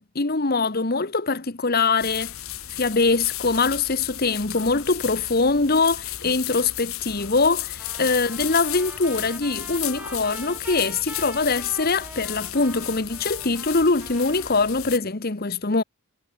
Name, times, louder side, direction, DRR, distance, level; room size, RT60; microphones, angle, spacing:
voice 1, 0.0-2.3 2.7-15.8, left 3 dB, 45° left, 1.2 m, -23 dB
sound 1, 2.0-15.0, left 13 dB, 75° left, 3.0 m, -34 dB
Trumpet, 7.8-14.8, right 1 dB, 10° right, 7.2 m, -43 dB
head